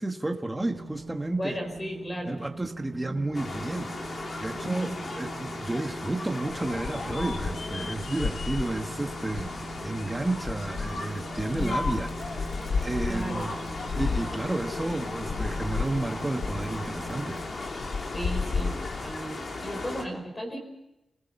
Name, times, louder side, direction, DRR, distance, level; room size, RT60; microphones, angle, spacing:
voice 1, 0.0-1.6 2.2-12.5 12.8-13.5 14.0-17.4, right 2 dB, 10° right, 4 dB, 1.5 m, -32 dB
sound 1, 0.6-17.5, right 4 dB, 65° right, 2.9 m, -43 dB
voice 2, 1.3-2.4 4.5-5.0 11.5-11.8 13.0-13.5 18.0-20.6, equal, 20° left, 3 dB, 4.6 m, -35 dB
sound 2, 3.3-20.0, left 2 dB, 45° left, 2.9 m, -37 dB
sound 3, 6.5-19.2, left 5 dB, 70° left, 1.2 m, -34 dB
28.5 x 21.0 x 5.5 m, 0.93 s
wide cardioid pair, 175°, 0 cm